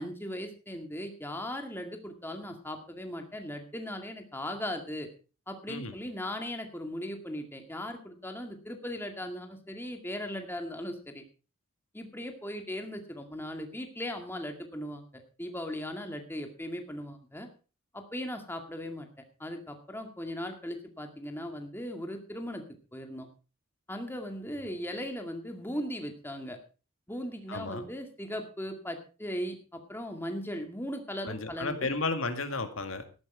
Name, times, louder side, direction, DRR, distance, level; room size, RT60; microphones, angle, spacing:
voice 1, 0.0-5.1 5.5-11.2 11.9-17.5 17.9-19.1 19.4-22.6 22.9-23.3 23.9-26.6 27.1-31.9, equal, 10° left, 4 dB, 2.1 m, -38 dB
voice 2, 27.5-27.8 31.2-33.0, left 3 dB, 75° left, 8 dB, 2.0 m, -33 dB
13.5 x 11.5 x 4.9 m, 0.34 s
head